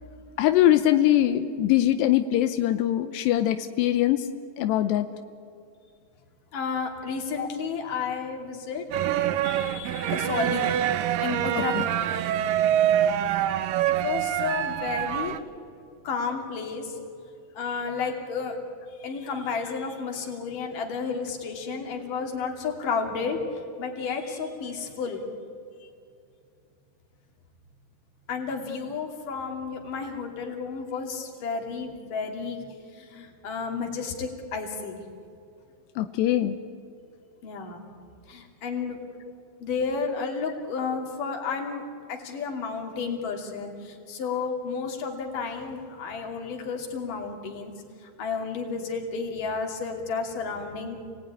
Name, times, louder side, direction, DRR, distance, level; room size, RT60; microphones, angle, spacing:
voice 1, 0.4-4.3 4.6-5.1 7.4-7.5 11.5-11.8 36.0-36.6, left 12 dB, 85° left, 8 dB, 3.0 m, -22 dB
voice 2, 6.5-8.9 9.4-10.9 11.2-12.0 13.9-15.4 16.0-17.0 17.6-18.6 19.0-23.4 23.8-25.2 28.3-32.6 33.0-35.0 37.4-37.8 38.3-39.0 39.6-41.8 42.1-47.7 48.2-51.0, left 5 dB, 55° left, 2 dB, 4.2 m, -32 dB
sound 1, 8.9-15.4, right 11 dB, 75° right, 2.2 m, -25 dB
30.0 x 19.5 x 9.8 m, 2.5 s
omnidirectional pair, 4.8 m